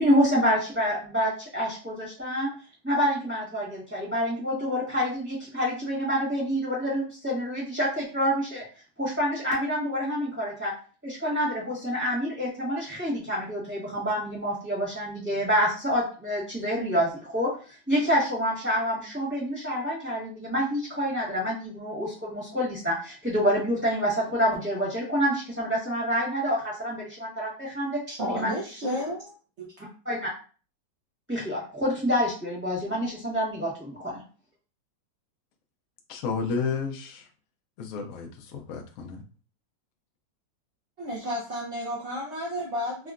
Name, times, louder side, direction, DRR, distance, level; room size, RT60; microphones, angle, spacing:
voice 1, 0.0-2.5 2.8-8.6 9.0-10.7 11.0-28.0 28.3-28.5 30.0-30.3 31.3-34.2, equal, 10° right, -7 dB, 1.0 m, -27 dB
voice 2, 28.1-29.3 29.6-29.7 41.0-43.1, equal, 75° right, -4 dB, 0.6 m, -32 dB
voice 3, 36.1-37.3 37.8-39.2, left 5 dB, 80° left, 2 dB, 0.7 m, -32 dB
3.7 x 2.2 x 2.4 m, 0.37 s
omnidirectional pair, 2.0 m